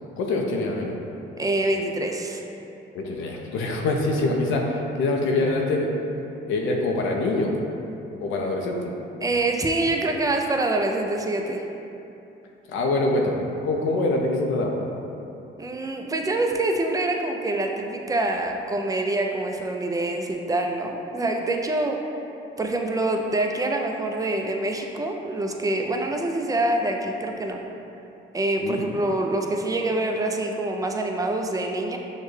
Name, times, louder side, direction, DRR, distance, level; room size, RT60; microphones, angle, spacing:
voice 1, 0.2-1.0 2.9-6.0 6.5-7.5 8.2-8.8 12.7-14.8 28.6-28.8, left 2 dB, 85° left, 1 dB, 0.5 m, -24 dB
voice 2, 1.4-2.4 9.2-11.6 15.6-22.0 22.6-27.6 28.3-32.0, right 2 dB, 20° right, 3 dB, 0.4 m, -25 dB
6.4 x 2.2 x 3.2 m, 2.9 s
cardioid pair, 90°, 20 cm